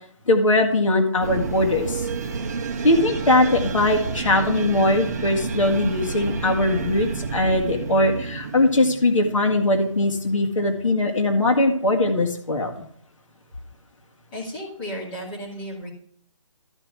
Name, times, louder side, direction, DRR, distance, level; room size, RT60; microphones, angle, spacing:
voice 1, 0.3-2.1 2.8-12.9, left 2 dB, 75° left, 2 dB, 1.8 m, -20 dB
sound 1, 1.2-10.5, right 5 dB, 30° right, 0.8 m, -30 dB
voice 2, 14.3-15.9, equal, 15° left, -6 dB, 2.5 m, -33 dB
13.5 x 4.7 x 5.8 m, 0.63 s
hypercardioid pair, 170°, 17 cm